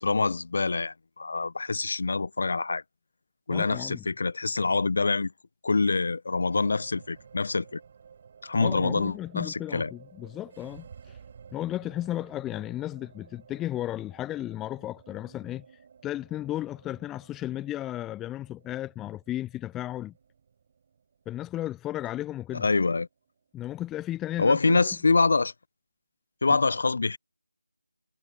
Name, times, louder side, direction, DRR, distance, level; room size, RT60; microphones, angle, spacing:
voice 1, 0.0-2.8 3.5-5.3 5.6-7.8 8.4-9.9 22.5-23.1 24.4-25.5 26.4-27.2, left 3 dB, 50° left, 0.7 m, -25 dB
voice 2, 3.5-4.0 8.5-11.2 11.5-15.6 16.0-20.1 21.3-22.7 23.5-24.8, left 14 dB, 5° left, 0.3 m, -34 dB
sound 1, 6.4-24.9, right 6 dB, 30° right, 7.4 m, -54 dB
figure-of-eight pair, 160°, 0 cm